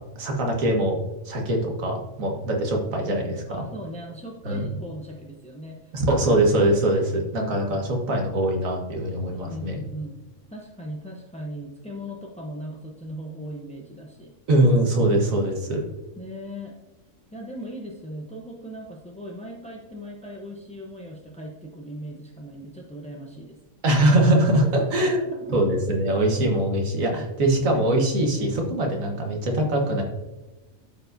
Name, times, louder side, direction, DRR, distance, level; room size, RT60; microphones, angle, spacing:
voice 1, 0.1-1.0 1.2-3.6 4.4-4.7 5.9-9.8 14.5-15.8 23.8-25.2 25.5-30.0, right 1 dB, 75° right, 1 dB, 1.6 m, -22 dB
voice 2, 3.5-6.2 6.9-7.0 9.3-10.1 10.5-14.3 16.2-16.8 17.3-23.6 24.4-25.7 26.2-26.3, equal, 10° left, -1 dB, 0.4 m, -38 dB
12.5 x 4.7 x 2.6 m, 1.1 s
omnidirectional pair, 1.4 m